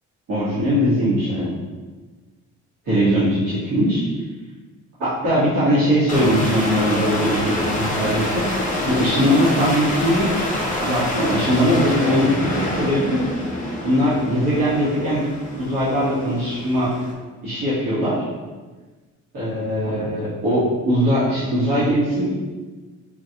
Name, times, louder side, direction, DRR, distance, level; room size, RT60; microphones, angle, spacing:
voice 1, 0.3-1.5 2.8-4.0 5.0-8.5 8.8-10.3 10.8-13.2 13.8-16.9 17.4-18.2 19.3-22.3, equal, 80° right, -12 dB, 1.4 m, -20 dB
sound 1, 6.1-17.1, left 1 dB, 25° left, 0.8 m, -26 dB
4.5 x 2.3 x 2.8 m, 1.3 s
cardioid pair, 90°, 30 cm